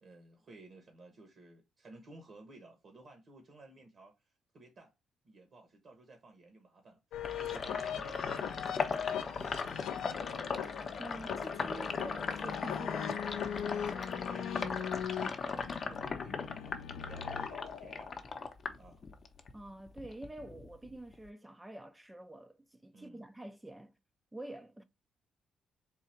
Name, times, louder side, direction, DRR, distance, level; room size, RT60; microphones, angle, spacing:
voice 1, 0.0-4.1 4.5-4.9 5.2-7.0 7.3-8.9 11.7-11.9 14.3-18.5 18.8-19.0 22.9-23.3, right 2 dB, 50° right, 1.1 m, -55 dB
sound 1, 7.1-18.1, left 8 dB, 85° left, 0.5 m, -40 dB
Sink (filling or washing), 7.2-19.5 19.9-21.3, left 5 dB, 45° left, 0.7 m, -38 dB
voice 2, 11.0-13.7 19.5-23.9 24.3-24.8, right 1 dB, 10° right, 0.4 m, -47 dB
3.8 x 2.4 x 4.2 m
cardioid pair, 90°, 0 cm